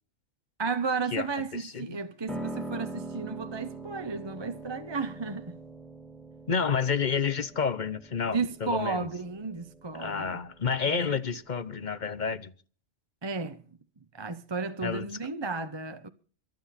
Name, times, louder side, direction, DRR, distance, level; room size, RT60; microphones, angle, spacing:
voice 1, 0.6-5.6 8.2-10.4 10.8-11.2 13.2-13.6 14.1-16.1, right 4 dB, 25° right, 0.8 m, -33 dB
voice 2, 1.5-2.0 6.5-9.1 9.9-12.5 14.8-15.1, left 6 dB, 40° left, 0.9 m, -30 dB
Piano, 2.3-12.2, right 2 dB, ahead, 2.4 m, -43 dB
24.0 x 9.3 x 4.2 m
omnidirectional pair, 1.3 m